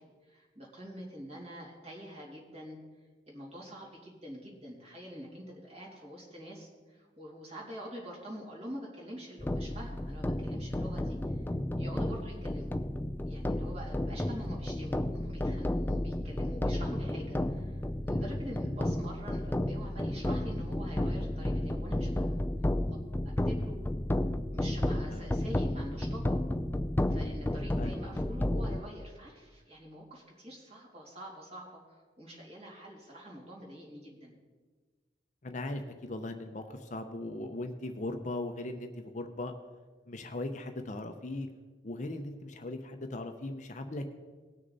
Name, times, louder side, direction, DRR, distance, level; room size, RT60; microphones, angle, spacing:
voice 1, 0.0-2.8 3.3-11.4 11.8-12.7 13.3-22.4 22.9-23.0 23.4-23.8 24.5-26.4 27.1-34.3, equal, 35° right, -3 dB, 2.8 m, -46 dB
sound 1, 9.4-28.8, left 1 dB, 10° left, 0.4 m, -32 dB
voice 2, 35.4-39.5 40.1-41.5 41.8-44.1, left 2 dB, 45° left, 6 dB, 0.7 m, -38 dB
19.0 x 6.4 x 4.1 m, 1.4 s
head